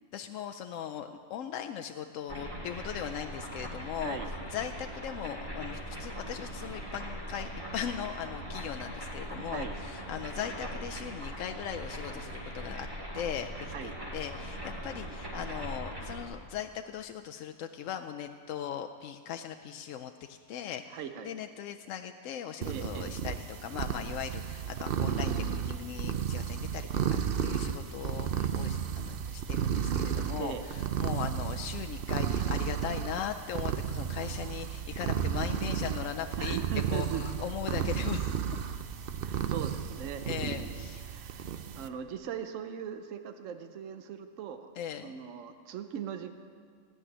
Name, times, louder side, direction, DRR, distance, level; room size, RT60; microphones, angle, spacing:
voice 1, 0.1-4.2 4.5-12.9 13.1-21.0 21.2-36.6 36.9-38.4 40.2-41.1 44.8-45.1, left 9 dB, 90° left, 6 dB, 1.0 m, -39 dB
sound 1, 2.3-16.2, equal, 25° right, 2.4 m, -40 dB
voice 2, 20.9-21.3 22.6-23.1 30.4-30.6 36.4-37.2 39.2-41.5 41.7-44.7 45.0-46.3, right 8 dB, 85° right, 8 dB, 1.1 m, -40 dB
sound 2, 22.6-41.9, right 8 dB, 55° right, 0.7 m, -33 dB
16.5 x 6.2 x 9.9 m, 2.1 s
omnidirectional pair, 1.3 m